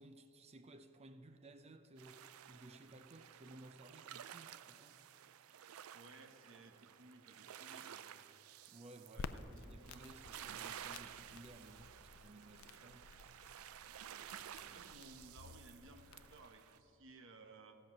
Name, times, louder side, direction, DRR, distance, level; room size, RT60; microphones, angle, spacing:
voice 1, 0.0-5.0 8.7-13.1 14.6-14.9, right 2 dB, 30° right, 0.5 m, -58 dB
sound 1, 2.0-16.8, right 10 dB, 85° right, 0.4 m, -54 dB
voice 2, 5.9-8.2 9.1-9.8 14.1-14.3 14.7-17.8, right 3 dB, 65° right, 1.0 m, -59 dB
Crackle, 9.2-16.5, left 5 dB, 80° left, 0.5 m, -54 dB
15.0 x 7.8 x 6.0 m
head